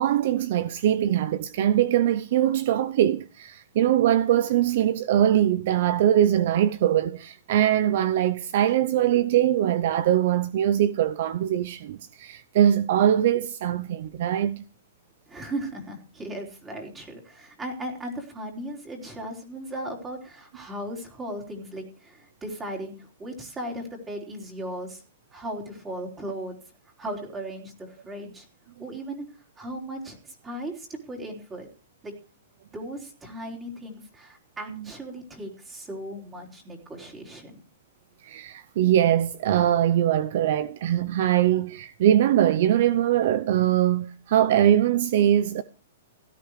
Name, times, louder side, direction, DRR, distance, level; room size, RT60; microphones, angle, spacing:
voice 1, 0.0-14.6 38.2-45.6, right 11 dB, 55° right, 0.6 m, -22 dB
voice 2, 15.3-25.0 25.3-26.6 27.0-28.5 28.8-29.2 29.6-31.7 32.0-32.1 32.7-37.6, right 1 dB, 15° right, 3.9 m, -37 dB
17.0 x 12.5 x 3.2 m
hypercardioid pair, 150°, 0 cm